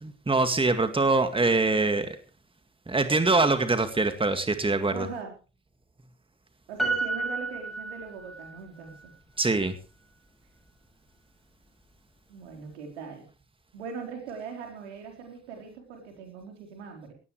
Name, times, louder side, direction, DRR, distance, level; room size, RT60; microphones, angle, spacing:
voice 1, 0.0-2.2 2.9-5.1 9.4-9.8, right 3 dB, 15° right, 9 dB, 2.2 m, -24 dB
voice 2, 4.9-5.3 6.7-9.1 12.3-13.3 13.7-17.1, right 5 dB, 80° right, 3 dB, 4.3 m, -40 dB
Piano, 6.8-8.6 8.9-9.0, right 3 dB, ahead, 6.2 m, -31 dB
19.5 x 15.0 x 3.3 m, 0.36 s
hypercardioid pair, 50°, 34 cm